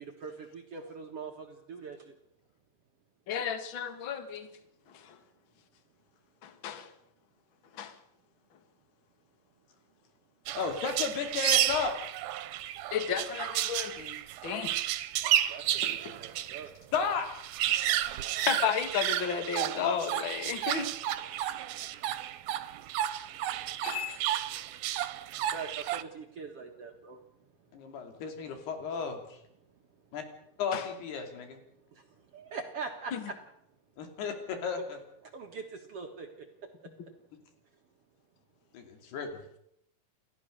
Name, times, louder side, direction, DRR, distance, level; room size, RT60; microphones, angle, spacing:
voice 1, 0.0-2.1 15.2-16.8 17.7-17.8 21.3-24.0 24.5-27.7 31.9-33.3 35.2-36.5, right 5 dB, 55° right, 4 dB, 1.9 m, -44 dB
voice 2, 3.3-4.5 4.9-5.2 6.4-6.9 7.7-7.9 12.9-14.7 15.8-16.1 18.5-20.9 23.8-24.2 30.7-30.8 33.1-33.2, left 8 dB, 45° left, 9 dB, 1.8 m, -33 dB
voice 3, 10.5-12.0 16.9-17.3 19.7-20.0 24.9-25.0 27.7-29.4 30.1-30.2 30.6-31.6 34.0-35.0 38.7-39.4, left 5 dB, 85° left, 5 dB, 4.9 m, -33 dB
sound 1, 10.5-16.6 16.9-17.0 17.3-26.0, right 12 dB, 75° right, 2.7 m, -32 dB
29.0 x 14.0 x 6.6 m, 0.75 s
omnidirectional pair, 4.5 m